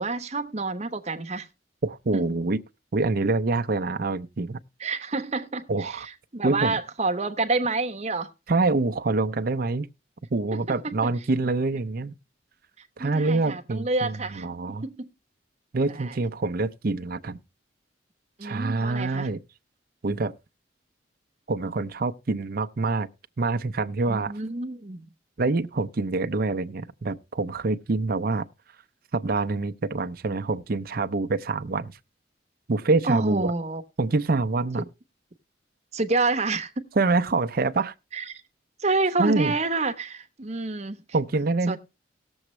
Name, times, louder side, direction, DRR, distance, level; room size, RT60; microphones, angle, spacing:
voice 1, 0.0-1.5 2.1-2.2 4.8-8.3 10.8-11.1 12.8-15.1 15.9-16.2 18.4-19.3 24.1-25.1 33.0-33.8 35.9-36.9 38.1-38.4 38.8-41.0 41.7-41.8, right 3 dB, 35° right, 0.9 m, -28 dB
voice 2, 1.8-2.6 2.9-4.6 5.7-6.1 6.4-6.7 8.5-9.9 10.3-12.1 13.0-14.8 15.7-17.4 18.4-19.4 20.0-20.3 21.5-23.1 23.4-24.3 25.4-28.4 29.1-32.0 32.7-33.5 34.0-34.8 37.0-37.9 39.2-39.5 41.1-41.8, right 3 dB, 55° right, 0.6 m, -26 dB
18.5 x 7.1 x 3.1 m
head